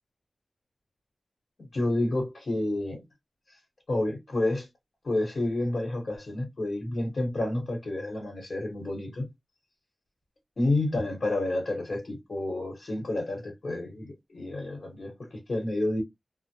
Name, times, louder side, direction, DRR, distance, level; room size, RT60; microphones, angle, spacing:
voice 1, 1.7-3.0 3.9-4.7 5.0-9.3 10.6-16.0, left 2 dB, 75° left, 1.1 m, -29 dB
2.2 x 2.1 x 2.8 m
cardioid pair, 40°, 0 cm